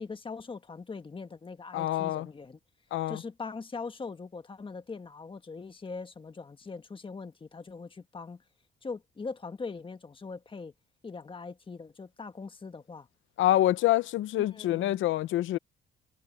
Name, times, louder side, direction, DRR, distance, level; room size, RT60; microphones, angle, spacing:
voice 1, 0.0-2.6 3.1-8.4 8.8-10.7 11.0-13.1 14.4-15.0, left 4 dB, 25° left, 1.5 m, -41 dB
voice 2, 1.7-2.3 2.9-3.2 13.4-15.6, left 14 dB, 80° left, 0.7 m, -26 dB
cardioid pair, 90°, 20 cm